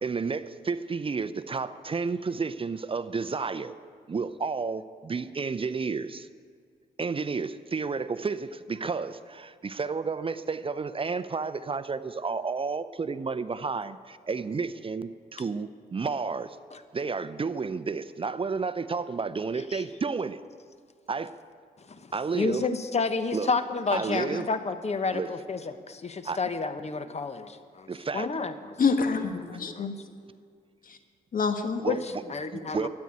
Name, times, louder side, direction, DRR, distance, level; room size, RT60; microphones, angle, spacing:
voice 1, 0.0-3.7 4.1-6.3 7.0-16.6 16.9-20.4 21.1-21.3 22.1-22.6 23.3-23.5 23.9-24.5 25.1-25.3 26.2-26.4 27.9-28.3 31.8-32.0 32.5-32.9, right 4 dB, 35° right, 13 dB, 0.6 m, -31 dB
voice 2, 21.8-27.9 28.1-28.8 29.5-29.9 31.9-32.9, left 4 dB, 40° left, 10 dB, 1.1 m, -30 dB
voice 3, 28.8-30.0 30.9-31.0 31.3-31.8, left 5 dB, 55° left, 7 dB, 1.5 m, -27 dB
13.5 x 9.5 x 8.8 m, 2.2 s
cardioid pair, 75°, 17 cm